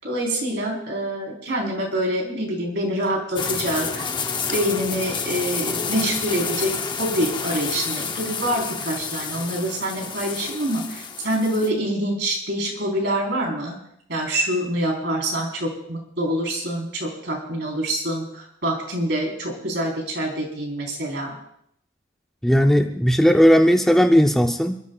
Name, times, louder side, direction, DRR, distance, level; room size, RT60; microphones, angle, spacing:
voice 1, 0.0-4.0 4.5-13.7 14.1-21.4, right 1 dB, 60° right, 0 dB, 4.2 m, -26 dB
sound 1, 3.3-11.7, left 5 dB, 25° left, 0.9 m, -29 dB
voice 2, 22.4-24.8, equal, ahead, 3 dB, 0.6 m, -16 dB
27.5 x 13.0 x 2.4 m, 0.72 s
head